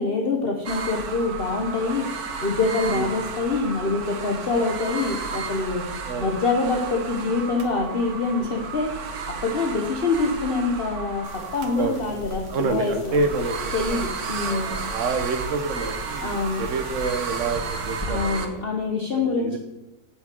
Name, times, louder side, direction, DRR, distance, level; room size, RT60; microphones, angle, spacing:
voice 1, 0.0-2.1 2.4-5.8 6.2-11.3 11.5-13.2 13.7-14.8 16.2-16.6 18.0-19.6, left 3 dB, 40° left, 1 dB, 1.2 m, -25 dB
sound 1, 0.6-18.5, right 5 dB, 80° right, 1.7 m, -33 dB
sound 2, 11.2-18.1, left 1 dB, 20° left, 2.8 m, -40 dB
voice 2, 12.5-14.0 14.4-18.6 19.1-19.6, right 3 dB, 55° right, 6 dB, 1.4 m, -28 dB
12.0 x 6.2 x 7.7 m, 0.95 s
omnidirectional pair, 1.6 m